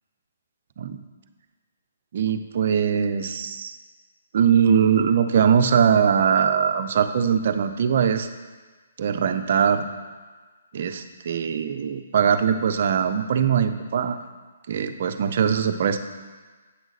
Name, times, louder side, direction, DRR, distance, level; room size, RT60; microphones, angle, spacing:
voice 1, 2.1-3.8 4.3-8.3 9.0-9.9 10.7-14.2 14.7-16.0, right 7 dB, 50° right, 8 dB, 0.5 m, -21 dB
8.2 x 6.2 x 4.0 m, 1.4 s
hypercardioid pair, 165°, 0 cm